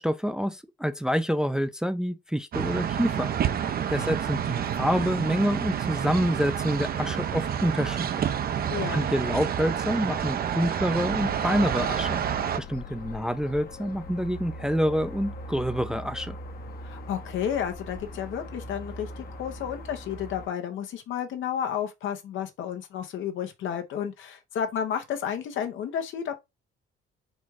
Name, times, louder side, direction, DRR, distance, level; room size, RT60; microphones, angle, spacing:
voice 1, 0.0-3.3 3.9-8.3 8.9-16.4, equal, 5° right, 0.4 m, -27 dB
sound 1, 2.5-12.6, right 9 dB, 50° right, 0.6 m, -29 dB
voice 2, 8.7-9.1 16.8-26.4, left 8 dB, 75° left, 0.9 m, -32 dB
sound 2, 11.2-20.5, left 1 dB, 50° left, 0.9 m, -41 dB
4.3 x 2.4 x 4.7 m
cardioid pair, 90°, 20 cm